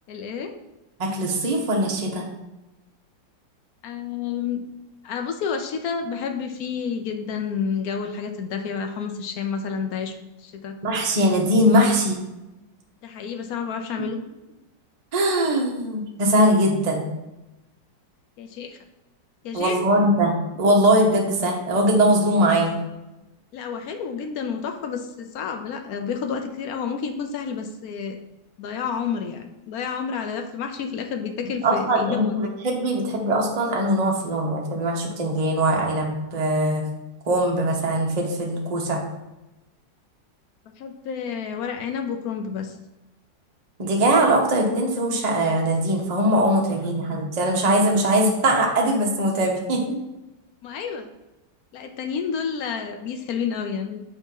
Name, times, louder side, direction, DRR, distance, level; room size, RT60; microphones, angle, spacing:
voice 1, 0.1-0.5 3.8-4.7 5.0-10.8 13.0-14.2 18.4-18.8 19.4-19.8 23.5-28.2 28.6-32.4 40.8-42.8 50.6-51.1 51.7-54.0, left 6 dB, 70° left, 6 dB, 0.9 m, -30 dB
voice 2, 1.0-2.2 10.8-12.2 15.1-17.1 19.5-22.8 31.6-36.8 37.3-39.0 43.8-50.0, right 1 dB, 35° right, 0 dB, 0.6 m, -21 dB
7.1 x 2.8 x 5.3 m, 0.99 s
omnidirectional pair, 2.0 m